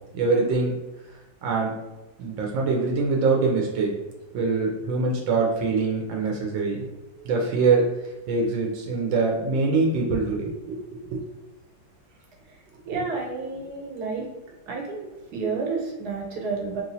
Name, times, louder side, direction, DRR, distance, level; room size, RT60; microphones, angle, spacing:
voice 1, 0.1-0.7 1.4-1.8 2.2-3.9 4.3-6.9 7.2-7.9 8.3-10.8 11.1-11.2 12.9-13.0, right 4 dB, 80° right, 0 dB, 1.3 m, -23 dB
voice 2, 12.9-14.3 14.7-15.1 15.3-16.8, right 4 dB, 65° right, -1 dB, 1.2 m, -30 dB
3.1 x 3.0 x 2.6 m, 1.1 s
omnidirectional pair, 2.1 m